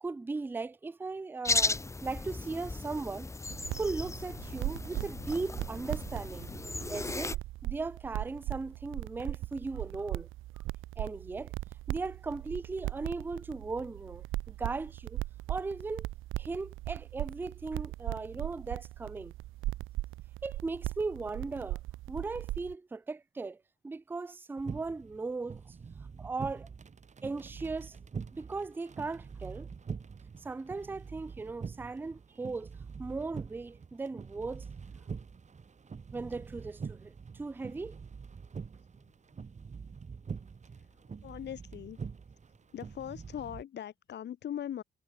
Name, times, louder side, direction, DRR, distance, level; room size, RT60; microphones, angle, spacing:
voice 1, 0.0-3.3 3.8-6.5 6.9-10.3 11.0-11.5 11.9-15.2 15.5-16.1 16.4-19.3 20.4-21.8 22.1-23.6 23.8-25.6 26.2-26.7 27.2-28.0 28.3-29.7 30.4-32.7 33.0-34.6 36.1-37.1 37.4-37.9, right 3 dB, 10° right, 0.4 m, -37 dB
sound 1, 1.4-7.4, left 3 dB, 15° left, 0.8 m, -35 dB
sound 2, 3.5-22.7, right 16 dB, 85° right, 0.8 m, -39 dB
sound 3, 24.6-43.6, right 5 dB, 35° right, 3.0 m, -45 dB
voice 2, 40.7-42.0 42.7-44.8, left 10 dB, 60° left, 1.3 m, -41 dB
cardioid pair, 90°, 20 cm